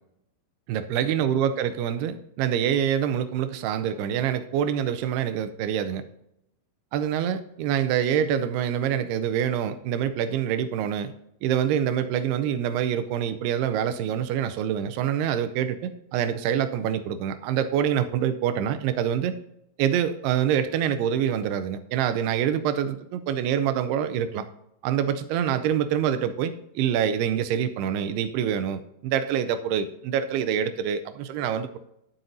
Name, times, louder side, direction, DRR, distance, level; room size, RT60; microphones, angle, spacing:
voice 1, 0.7-6.0 6.9-11.1 11.4-19.4 19.8-24.5 24.8-31.8, right 9 dB, 80° right, 10 dB, 2.5 m, -26 dB
11.5 x 7.9 x 2.6 m, 0.80 s
omnidirectional pair, 4.7 m